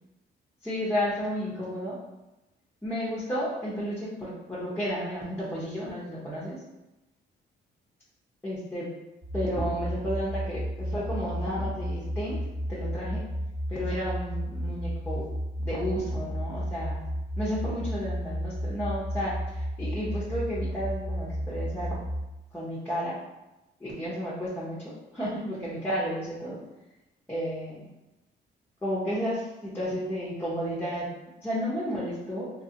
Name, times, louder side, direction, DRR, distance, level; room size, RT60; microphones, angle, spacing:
voice 1, 0.6-2.0 2.8-6.6 8.4-8.9 9.3-12.3 12.7-13.2 13.7-15.3 15.6-22.0 22.5-23.2 23.8-26.6 27.3-27.9 28.8-31.1 31.4-32.5, equal, 10° left, -9 dB, 0.9 m, -32 dB
sound 1, 9.2-22.3, equal, 10° right, 1.3 m, -33 dB
3.3 x 2.2 x 2.8 m, 0.98 s
cardioid pair, 90°, 20 cm